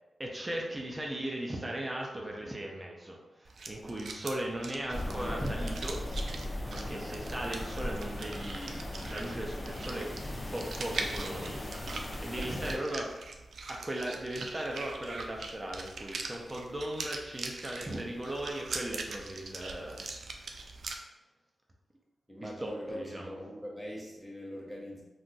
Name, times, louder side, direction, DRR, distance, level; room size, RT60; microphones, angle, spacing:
voice 1, 0.2-6.1 6.7-13.1 13.7-20.1 20.3-21.0 22.4-23.3, right 1 dB, 25° right, 0 dB, 0.5 m, -38 dB
sound 1, 3.4-21.0, right 3 dB, 80° right, 0.3 m, -42 dB
sound 2, 4.9-12.8, left 1 dB, 30° left, 0.5 m, -38 dB
voice 2, 12.4-12.9 22.3-25.0, equal, 5° right, -4 dB, 0.9 m, -42 dB
2.5 x 2.3 x 3.8 m, 1.0 s
wide cardioid pair, 90°, 0 cm